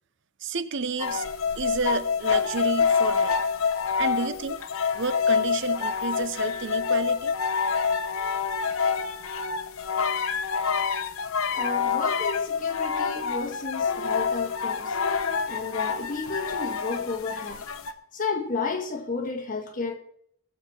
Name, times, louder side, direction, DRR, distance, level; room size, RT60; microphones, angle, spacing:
voice 1, 0.4-1.3 1.6-3.4 4.0-4.6 4.9-7.3, right 4 dB, 55° right, 0.7 m, -31 dB
sound 1, 1.0-17.9, left 6 dB, 75° left, 0.9 m, -27 dB
voice 2, 11.5-14.9 15.5-17.6 18.1-20.0, left 4 dB, 40° left, 1.8 m, -32 dB
20.5 x 7.3 x 4.4 m
head